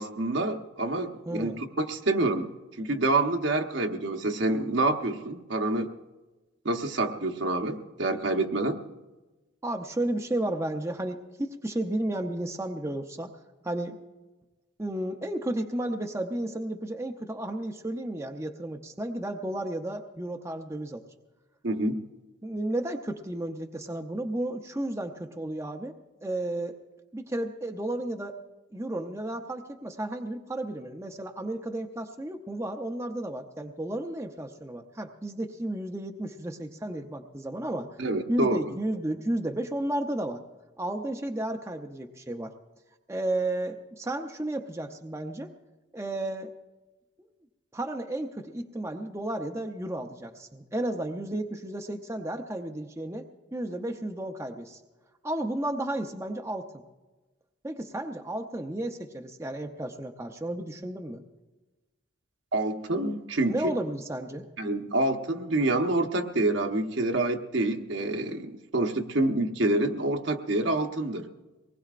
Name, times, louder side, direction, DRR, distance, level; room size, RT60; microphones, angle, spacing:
voice 1, 0.0-2.5 2.8-5.9 6.6-8.8 21.6-22.0 38.0-38.8 62.5-63.7 64.6-71.3, right 2 dB, 65° right, 4 dB, 1.0 m, -27 dB
voice 2, 1.3-1.6 9.6-13.3 13.6-14.0 14.8-21.1 22.4-25.9 26.2-26.8 27.1-28.4 28.7-37.9 38.3-40.4 40.8-42.5 43.1-45.5 45.9-46.5 47.7-53.2 53.5-54.8 55.2-56.8 57.6-61.2 63.5-64.5, right 1 dB, 15° right, 3 dB, 0.6 m, -33 dB
24.0 x 19.5 x 2.5 m, 1.1 s
head